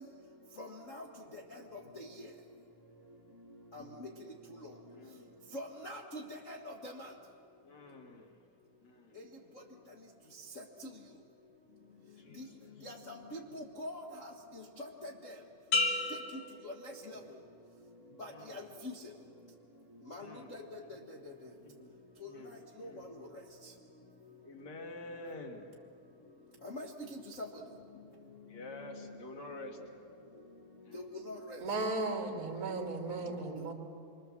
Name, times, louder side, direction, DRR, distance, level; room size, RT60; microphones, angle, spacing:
voice 1, 0.6-1.0 2.0-2.1 3.7-4.1 5.5-6.6 6.8-6.9 12.4-12.5 12.8-12.9 13.3-14.0 14.8-15.3 16.6-16.7 17.1-17.2 18.2-18.6 20.1-20.2 20.5-20.6 22.8-22.9 26.6-26.9 30.9-31.6, left 1 dB, 80° left, 1 dB, 0.7 m, -43 dB
voice 2, 4.9-5.4 7.6-8.4 8.8-9.3 12.2-12.7 18.3-18.6 19.1-19.3 20.2-21.0 21.6-21.9 22.2-23.1 24.4-25.7 28.5-29.8 30.9-31.1, left 2 dB, 35° left, 3 dB, 2.3 m, -49 dB
sound 1, 15.7-17.5 18.0-18.4, left 3 dB, 60° left, 2.8 m, -34 dB
voice 3, 31.6-33.7, right 3 dB, 30° right, 3 dB, 2.1 m, -35 dB
26.5 x 23.5 x 7.5 m, 2.5 s
omnidirectional pair, 3.8 m